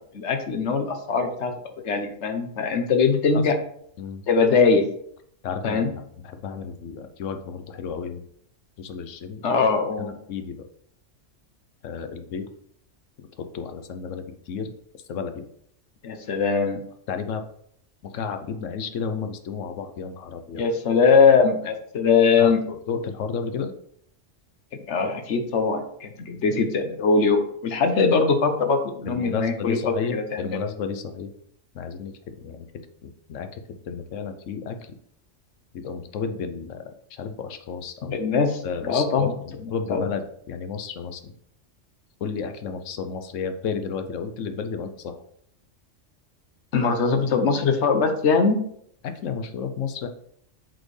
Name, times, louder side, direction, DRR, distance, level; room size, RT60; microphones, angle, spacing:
voice 1, 0.1-1.5 1.8-3.6 4.3-4.9 5.6-5.9 9.4-10.1 16.0-16.8 20.5-22.6 24.9-30.6 38.1-39.3 39.9-40.0 46.7-48.6, left 5 dB, 65° left, 6 dB, 1.1 m, -21 dB
voice 2, 5.4-5.8 6.2-8.2 8.8-9.4 10.0-10.7 11.8-12.5 13.2-15.5 17.1-17.4 18.0-20.6 22.4-23.7 29.1-31.3 31.7-32.7 33.0-35.0 35.7-38.2 38.6-41.2 42.2-45.2 49.0-50.1, left 6 dB, 85° left, 7 dB, 1.1 m, -32 dB
7.9 x 4.3 x 3.2 m, 0.67 s
omnidirectional pair, 1.3 m